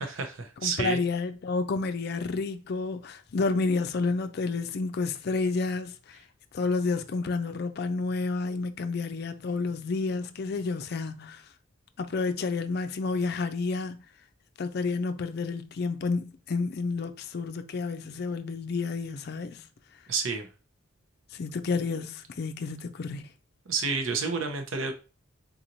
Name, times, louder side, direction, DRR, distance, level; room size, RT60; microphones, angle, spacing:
voice 1, 0.0-1.0 20.1-20.5 23.7-24.9, right 5 dB, 80° right, 0.7 m, -30 dB
voice 2, 0.6-6.2 6.5-11.4 12.0-14.0 14.6-19.7 21.3-23.3, left 4 dB, 50° left, 0.4 m, -30 dB
4.0 x 2.9 x 2.6 m
head